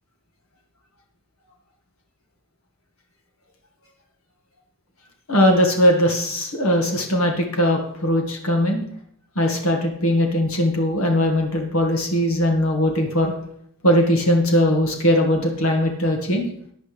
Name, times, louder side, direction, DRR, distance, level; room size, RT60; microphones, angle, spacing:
voice 1, 5.3-8.8 9.4-13.3 13.8-16.5, equal, 75° left, 2 dB, 1.8 m, -20 dB
14.5 x 10.5 x 3.4 m, 0.67 s
head